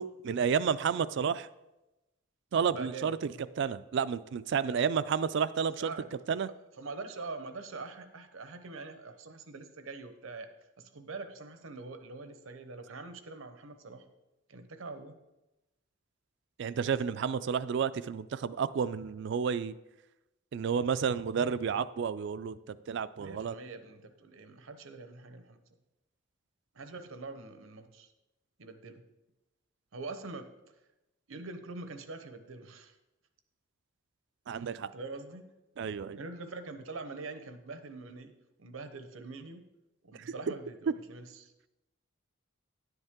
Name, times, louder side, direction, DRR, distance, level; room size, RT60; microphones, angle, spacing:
voice 1, 0.0-1.5 2.5-3.2 3.6-5.9 6.3-6.5 16.6-19.7 20.5-23.6 34.5-34.9 35.8-36.2 40.3-40.4, right 6 dB, 60° right, 15 dB, 0.4 m, -31 dB
voice 2, 2.7-3.4 4.7-5.1 5.8-6.1 6.8-10.5 10.8-14.0 14.5-15.2 23.2-25.6 26.7-28.1 28.6-29.0 29.9-30.8 31.3-33.0 34.5-35.5 36.2-38.3 38.6-39.7 40.0-41.5, right 3 dB, 85° right, 9 dB, 0.9 m, -44 dB
10.5 x 8.0 x 3.6 m, 0.97 s
head